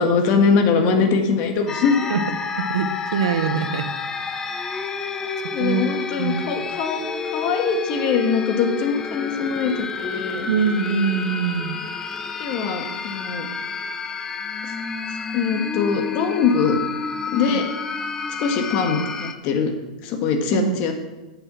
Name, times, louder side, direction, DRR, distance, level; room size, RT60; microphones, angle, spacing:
voice 1, 0.0-2.1 5.5-10.5 12.4-13.5 15.3-16.8 17.3-17.6 18.4-19.7 20.0-20.9, left 5 dB, 40° left, 5 dB, 1.5 m, -22 dB
sound 1, 1.7-19.3, left 5 dB, 15° left, 0.6 m, -29 dB
voice 2, 2.6-3.8 4.4-4.6 5.6-5.9 6.2-6.5 10.5-11.8 17.5-17.6 20.5-20.8, right 6 dB, 90° right, 10 dB, 1.0 m, -23 dB
10.0 x 7.2 x 6.1 m, 1.1 s
supercardioid pair, 155°, 3 cm